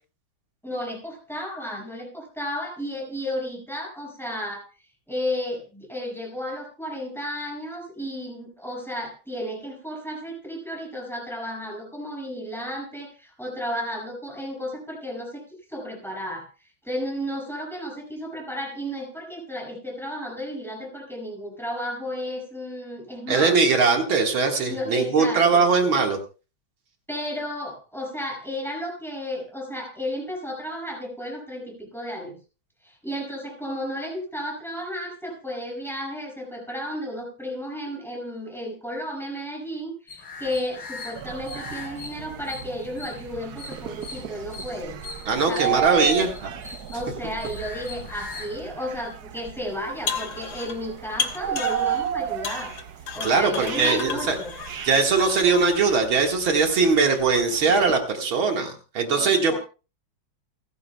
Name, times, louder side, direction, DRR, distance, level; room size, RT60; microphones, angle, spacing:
voice 1, 0.6-4.6 5.1-15.4 15.7-16.5 16.8-23.7 24.7-25.6 27.1-32.4 32.8-45.0 45.3-46.2 46.9-52.7 53.1-54.5 59.1-59.6, equal, ahead, -1 dB, 6.1 m, -33 dB
voice 2, 23.3-26.2 45.3-46.3 53.2-54.4 54.8-59.6, right 4 dB, 75° right, 3 dB, 2.6 m, -21 dB
sound 1, 40.1-48.7, left 3 dB, 90° left, 4.4 m, -41 dB
sound 2, 41.2-58.0, right 10 dB, 60° right, 1.2 m, -34 dB
sound 3, 49.8-50.8 51.2-52.1 52.4-55.9, left 6 dB, 70° left, 2.2 m, -33 dB
29.0 x 11.0 x 2.3 m, 0.33 s
omnidirectional pair, 2.2 m